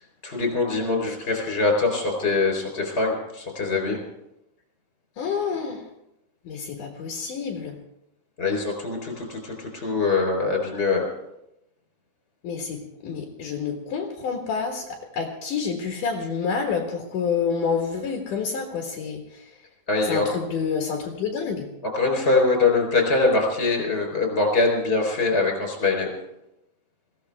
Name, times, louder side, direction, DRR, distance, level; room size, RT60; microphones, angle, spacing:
voice 1, 0.2-4.0 8.4-11.0 19.9-20.3 21.8-26.1, left 3 dB, 15° left, 2 dB, 3.4 m, -23 dB
voice 2, 5.2-5.9 6.4-7.7 12.4-19.6 20.0-21.7, left 6 dB, 60° left, 1 dB, 2.4 m, -28 dB
22.0 x 16.0 x 3.5 m, 0.85 s
omnidirectional pair, 5.5 m